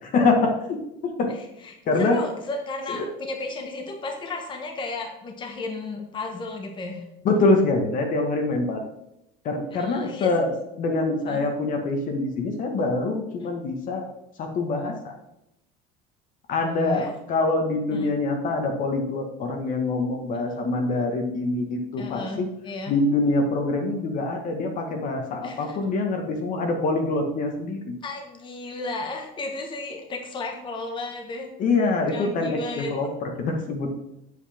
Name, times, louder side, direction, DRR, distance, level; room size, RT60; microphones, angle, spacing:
voice 1, 0.0-1.3 1.9-2.2 2.9-3.0 7.2-8.8 9.4-10.5 10.8-14.0 14.4-15.1 16.5-22.5 22.9-27.9 31.6-33.9, left 3 dB, 40° left, 3 dB, 1.3 m, -25 dB
voice 2, 1.3-7.0 9.7-10.3 11.3-11.5 16.6-17.1 17.9-18.1 22.0-22.9 25.4-25.8 28.0-31.5 32.1-32.9, left 3 dB, 25° left, 2 dB, 1.3 m, -34 dB
8.1 x 7.7 x 3.5 m, 0.83 s
cardioid pair, 155°, 20 cm